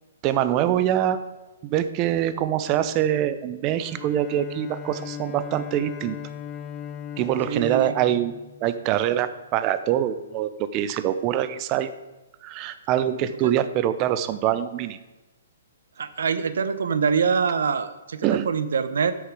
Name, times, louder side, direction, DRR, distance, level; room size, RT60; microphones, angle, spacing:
voice 1, 0.2-1.2 1.6-6.2 7.2-8.3 8.6-11.9 12.4-15.0 18.2-18.5, right 11 dB, 25° right, 13 dB, 0.6 m, -24 dB
Bowed string instrument, 3.7-9.0, left 9 dB, 15° left, 0.7 m, -38 dB
voice 2, 7.5-7.9 13.4-13.5 16.0-19.1, right 6 dB, 80° right, 12 dB, 0.8 m, -24 dB
13.0 x 6.6 x 4.9 m, 1.1 s
hypercardioid pair, 165°, 0 cm